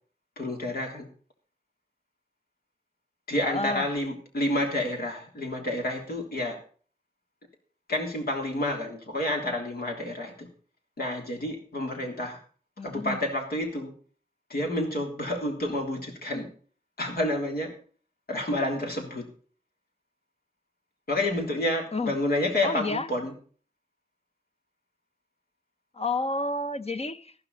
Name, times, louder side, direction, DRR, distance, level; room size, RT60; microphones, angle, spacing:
voice 1, 0.3-1.1 3.3-6.6 7.9-10.5 11.0-12.4 12.8-13.9 14.5-16.5 17.0-17.7 18.3-19.3 21.1-23.3, left 1 dB, 80° left, 3.6 m, -29 dB
voice 2, 3.4-3.9 12.8-13.2 21.9-22.2 22.6-23.1 25.9-27.3, left 2 dB, 40° left, 0.9 m, -30 dB
13.5 x 12.5 x 4.1 m
cardioid pair, 50°, 16 cm